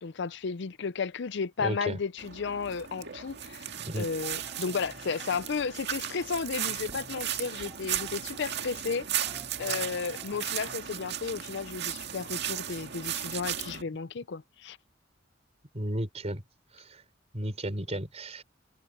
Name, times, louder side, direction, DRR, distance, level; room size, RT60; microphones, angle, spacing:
voice 1, 0.0-3.7 4.0-14.8, left 5 dB, 65° left, 0.5 m, -33 dB
voice 2, 1.6-2.0 3.8-4.1 15.7-16.4 16.7-17.0 17.3-18.4, right 1 dB, 35° right, 3.9 m, -34 dB
sound 1, 2.2-13.8, right 10 dB, 60° right, 2.0 m, -36 dB
sound 2, 4.2-6.3 6.6-10.8, equal, 5° right, 7.8 m, -54 dB
head